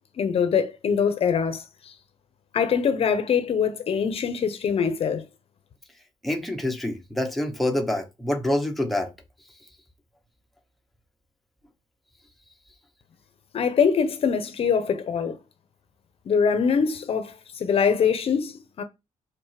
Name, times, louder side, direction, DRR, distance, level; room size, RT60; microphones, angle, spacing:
voice 1, 0.2-1.9 2.5-5.2 13.5-15.4 16.3-18.8, left 6 dB, 45° left, 1.0 m, -23 dB
voice 2, 6.2-9.1, left 1 dB, ahead, 1.1 m, -26 dB
5.7 x 4.0 x 5.8 m
cardioid pair, 155°, 13 cm